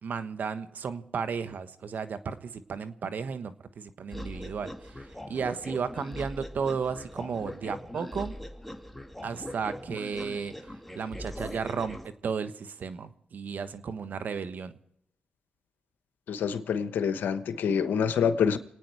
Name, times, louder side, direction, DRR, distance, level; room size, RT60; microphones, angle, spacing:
voice 1, 0.0-4.7 5.3-8.3 9.2-10.5 11.0-12.0 12.2-14.7, right 6 dB, 70° right, 11 dB, 1.3 m, -34 dB
sound 1, 4.1-12.1, left 1 dB, 5° left, 2.1 m, -41 dB
voice 2, 16.3-18.6, left 7 dB, 85° left, 11 dB, 1.1 m, -26 dB
28.0 x 9.5 x 4.8 m, 0.77 s
cardioid pair, 55°, 3 cm